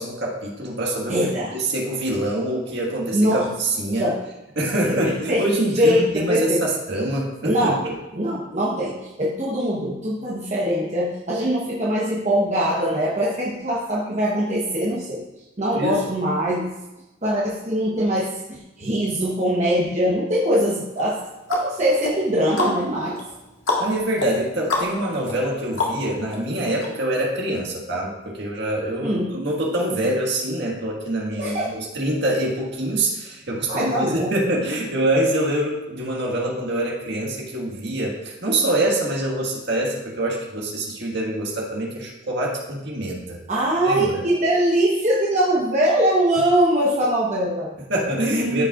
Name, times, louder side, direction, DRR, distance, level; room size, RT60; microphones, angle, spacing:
voice 1, 0.0-1.1 1.5-4.0 4.6-7.9 15.7-16.0 23.8-43.4 43.8-44.2 47.9-48.7, right 1 dB, 55° right, -2 dB, 1.7 m, -25 dB
voice 2, 1.1-1.5 3.1-3.5 4.0-4.2 4.9-5.5 5.8-6.6 7.4-7.8 8.1-15.2 15.6-16.7 17.2-21.2 21.5-23.2 29.0-29.3 31.4-31.7 33.7-34.3 43.5-47.7 48.3-48.7, equal, 35° right, -5 dB, 1.0 m, -22 dB
sound 1, 21.0-26.4 26.8-26.9, left 3 dB, 80° left, 1.8 m, -29 dB
13.0 x 5.5 x 2.5 m, 1.0 s
head